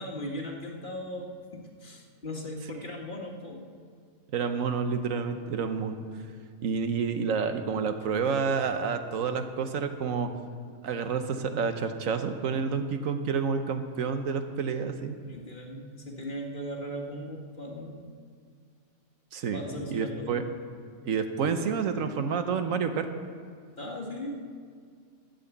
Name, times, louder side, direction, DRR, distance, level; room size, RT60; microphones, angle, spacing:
voice 1, 0.0-3.6 15.2-18.1 19.5-20.5 23.8-24.5, equal, 40° left, 1 dB, 1.4 m, -38 dB
voice 2, 4.3-6.0 6.6-10.3 10.8-15.2 19.3-19.6 19.9-20.4 21.0-23.1, right 5 dB, 75° right, 8 dB, 1.2 m, -29 dB
11.5 x 7.8 x 8.1 m, 2.1 s
omnidirectional pair, 1.4 m